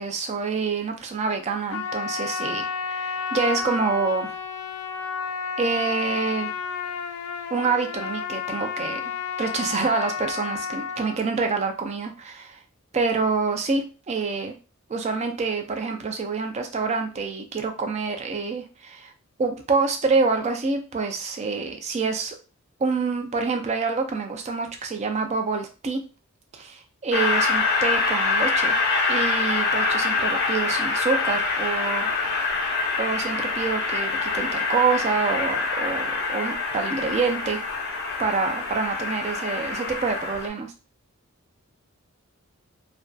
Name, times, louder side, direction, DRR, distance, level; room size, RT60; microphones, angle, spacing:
voice 1, 0.0-4.3 5.6-6.5 7.5-9.0 9.4-12.6 12.9-14.5 14.9-19.1 19.4-22.3 22.8-26.0 26.5-28.8 29.1-32.1 33.0-37.6 38.2-40.7, right 4 dB, 30° right, 5 dB, 0.4 m, -27 dB
Trumpet, 1.7-11.2, left 6 dB, 90° left, 0.3 m, -31 dB
Train, 27.1-40.5, left 4 dB, 50° left, 0.6 m, -25 dB
2.5 x 2.4 x 2.2 m, 0.33 s
head